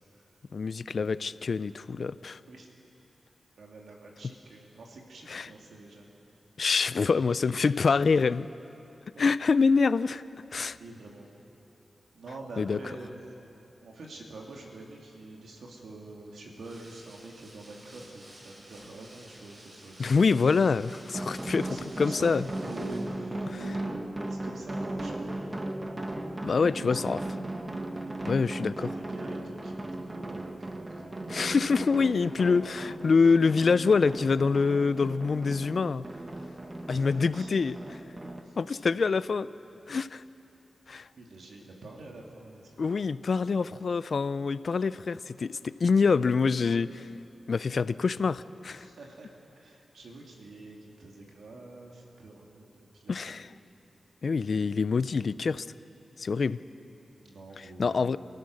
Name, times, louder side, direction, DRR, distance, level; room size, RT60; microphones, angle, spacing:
voice 1, 0.5-2.4 5.3-5.5 6.6-8.5 9.2-10.2 10.5-10.8 12.6-12.8 20.0-22.5 26.4-27.2 28.3-28.9 31.3-36.1 36.9-38.0 38.6-39.5 39.9-40.2 40.9-41.1 42.8-47.1 47.5-48.8 53.1-53.5 54.2-55.7 56.2-56.6 57.6-58.2, left 5 dB, 70° left, 16 dB, 0.5 m, -26 dB
voice 2, 3.6-6.1 7.6-8.2 9.1-9.2 10.7-11.3 12.1-13.1 13.8-20.3 21.6-25.7 26.6-27.0 28.5-31.4 36.9-37.5 38.4-39.1 41.1-43.0 48.7-53.4 57.1-58.2, right 2 dB, 85° right, 0 dB, 2.8 m, -46 dB
sound 1, 16.5-23.2, right 1 dB, 55° right, 5.9 m, -53 dB
sound 2, 21.1-38.4, right 1 dB, 30° right, 1.7 m, -37 dB
29.5 x 14.5 x 6.5 m, 2.9 s
cardioid pair, 45°, 0 cm